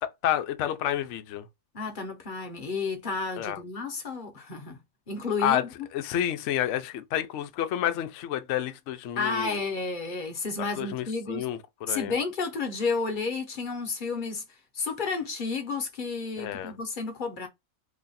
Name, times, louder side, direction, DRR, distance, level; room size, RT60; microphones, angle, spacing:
voice 1, 0.0-1.5 3.4-3.6 5.4-5.6 5.9-9.6 10.6-12.1 16.4-16.7, left 11 dB, 70° left, 0.8 m, -29 dB
voice 2, 1.7-4.8 5.1-5.7 9.2-11.5 11.9-14.4 14.7-17.5, left 4 dB, 40° left, 0.9 m, -31 dB
3.1 x 2.4 x 4.0 m
omnidirectional pair, 1.4 m